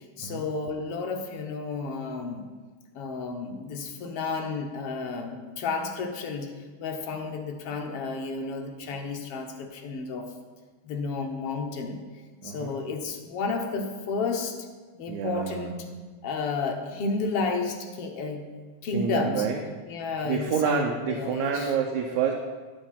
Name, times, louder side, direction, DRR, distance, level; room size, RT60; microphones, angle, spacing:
voice 1, 0.2-2.4 2.9-6.5 6.8-10.3 10.8-12.0 12.4-14.7 15.0-15.7 16.2-18.5 18.8-19.4 19.9-21.7, left 4 dB, 65° left, 3 dB, 1.7 m, -31 dB
voice 2, 12.4-12.8 15.1-15.9 18.9-19.6 20.2-22.3, right 7 dB, 90° right, 2 dB, 2.1 m, -28 dB
10.5 x 6.1 x 5.7 m, 1.4 s
omnidirectional pair, 3.3 m